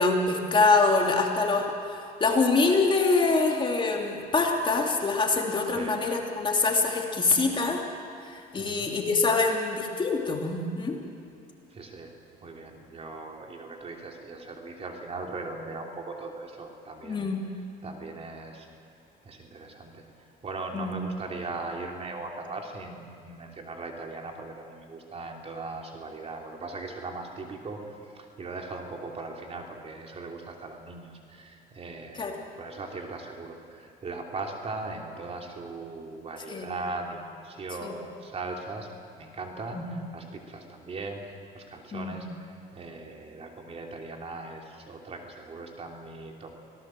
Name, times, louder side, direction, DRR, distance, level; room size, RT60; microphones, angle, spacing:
voice 1, 0.0-7.8 8.2-11.0 17.0-17.4 20.7-20.9 32.1-32.3 36.5-36.7 37.8-37.9 39.7-39.8 41.9-42.2, left 3 dB, 30° left, 1 dB, 3.1 m, -25 dB
voice 2, 8.6-8.9 11.7-12.1 12.4-17.3 17.8-18.7 19.2-20.0 20.4-38.9 39.2-46.5, right 3 dB, 35° right, 2 dB, 3.1 m, -39 dB
25.5 x 18.0 x 7.7 m, 2.3 s
cardioid pair, 110°, 17 cm